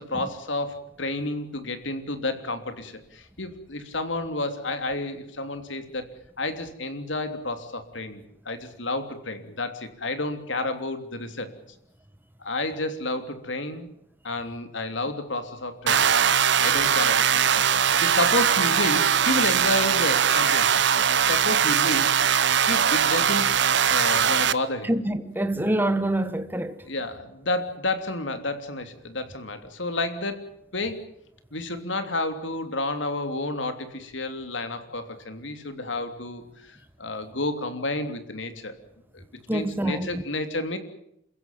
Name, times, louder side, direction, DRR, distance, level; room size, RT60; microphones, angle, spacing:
voice 1, 0.0-6.1 6.4-11.5 12.4-13.9 14.2-16.1 16.6-20.8 21.2-23.5 23.9-24.9 26.8-31.1 31.5-38.8 39.1-39.2 39.5-40.8, left 2 dB, 70° left, 3.2 m, -30 dB
sound 1, 15.9-24.5, right 8 dB, 60° right, 0.9 m, -21 dB
voice 2, 24.8-26.7 39.5-40.2, right 1 dB, 10° right, 1.2 m, -26 dB
28.5 x 16.0 x 9.1 m
head